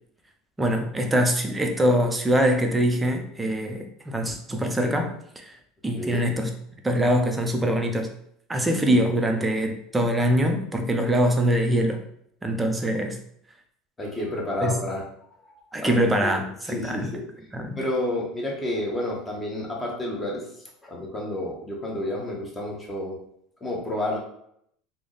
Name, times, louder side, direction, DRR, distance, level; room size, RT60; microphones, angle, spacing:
voice 1, 0.6-5.5 5.8-6.5 6.8-8.1 8.5-12.0 12.4-13.2 14.6-14.8 15.7-17.1 17.5-17.8, equal, 10° right, 4 dB, 0.5 m, -23 dB
voice 2, 14.0-15.0 15.4-17.2 17.8-20.4 20.8-23.2 23.6-24.2, left 1 dB, 15° left, -2 dB, 1.0 m, -30 dB
3.4 x 2.1 x 3.8 m, 0.71 s
supercardioid pair, 140°, 0 cm